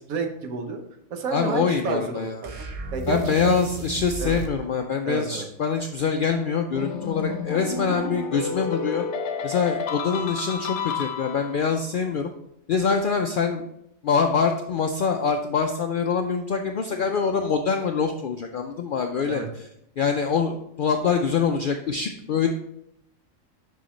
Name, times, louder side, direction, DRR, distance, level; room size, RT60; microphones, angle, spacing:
voice 1, 0.1-0.8 1.1-3.6 4.2-4.4 5.0-5.5 19.3-19.5, right 4 dB, 85° right, 5 dB, 1.3 m, -30 dB
voice 2, 1.3-2.4 3.1-9.0 9.4-12.3 12.7-13.6 14.0-19.7 20.0-22.5, left 5 dB, 85° left, 4 dB, 0.4 m, -24 dB
sound 1, 2.4-4.6, right 2 dB, 45° right, 0.4 m, -34 dB
sound 2, 6.7-11.7, left 5 dB, 60° left, 0.9 m, -30 dB
6.3 x 5.7 x 3.1 m, 0.77 s
omnidirectional pair, 1.4 m